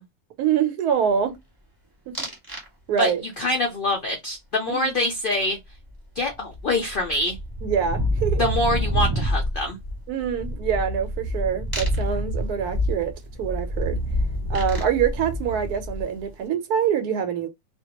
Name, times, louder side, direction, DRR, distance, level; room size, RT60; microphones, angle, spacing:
voice 1, 0.4-1.4 2.1-2.2 2.9-3.2 4.7-4.9 7.6-8.4 10.1-13.1 13.4-14.0 14.5-17.5, right 8 dB, 80° right, 1.1 m, -25 dB
sound 1, 2.1-2.7 3.0-3.4 5.9-6.0 6.2-16.3, equal, 15° right, 1.0 m, -27 dB
voice 2, 2.9-5.6 6.2-7.4 8.4-9.8, left 2 dB, 75° left, 0.4 m, -25 dB
2.5 x 2.2 x 2.8 m
omnidirectional pair, 1.6 m